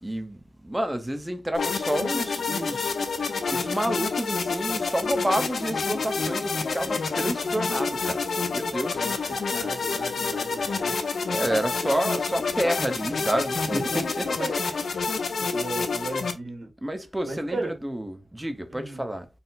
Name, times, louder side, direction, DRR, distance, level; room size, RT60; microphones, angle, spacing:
voice 1, 0.0-2.9 3.5-8.2 8.5-9.1 11.3-14.3 16.8-19.3, right 1 dB, 10° right, 0.6 m, -29 dB
sound 1, 1.5-16.3, left 4 dB, 80° left, 0.5 m, -28 dB
voice 2, 8.9-10.9 13.7-14.0 14.2-15.0 15.4-16.7 17.2-17.7 18.7-19.0, right 2 dB, 80° right, 1.7 m, -36 dB
4.0 x 2.0 x 4.0 m
wide cardioid pair, 85°, 0 cm